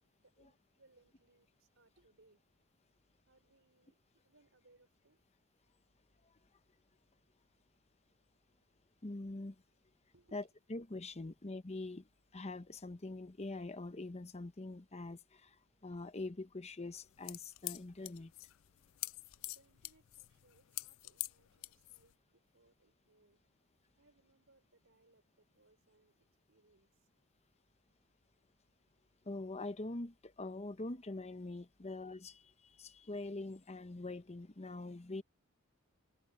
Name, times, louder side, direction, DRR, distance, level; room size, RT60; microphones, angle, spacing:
voice 1, 0.0-2.4 3.3-4.0 4.2-5.2 10.1-10.4 11.2-11.3 19.5-23.4 24.0-27.1, right 2 dB, 60° right, 4.6 m, -70 dB
voice 2, 9.0-9.5 10.3-12.0 12.3-15.5 15.8-18.3 29.3-32.4 32.8-35.2, left 2 dB, 30° left, 0.8 m, -44 dB
sound 1, 16.9-22.1, left 20 dB, 65° left, 0.4 m, -45 dB
head